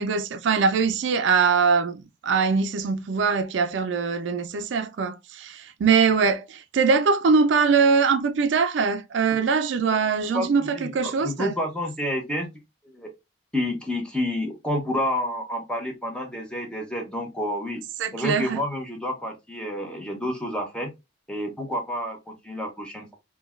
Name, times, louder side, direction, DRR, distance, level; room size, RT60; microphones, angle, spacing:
voice 1, 0.0-11.5 18.0-18.6, right 5 dB, 70° right, 0.4 m, -22 dB
voice 2, 10.3-12.5 12.8-13.1 13.5-17.8 18.1-20.9 21.3-23.1, left 1 dB, 5° left, 0.7 m, -29 dB
3.9 x 2.2 x 2.3 m
head